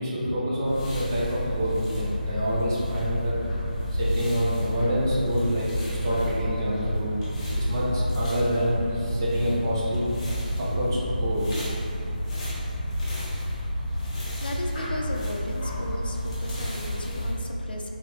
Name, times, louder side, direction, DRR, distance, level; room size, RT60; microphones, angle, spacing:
voice 1, 0.0-3.4 4.0-5.7 6.0-7.2 7.6-10.1 10.7-11.5, equal, 25° right, -8 dB, 0.7 m, -27 dB
sound 1, 0.6-17.3, equal, 35° left, 0.9 m, -30 dB
voice 2, 14.0-17.9, left 1 dB, 75° left, 0 dB, 0.5 m, -35 dB
3.7 x 2.7 x 2.9 m, 2.7 s
figure-of-eight pair, 170°, 5 cm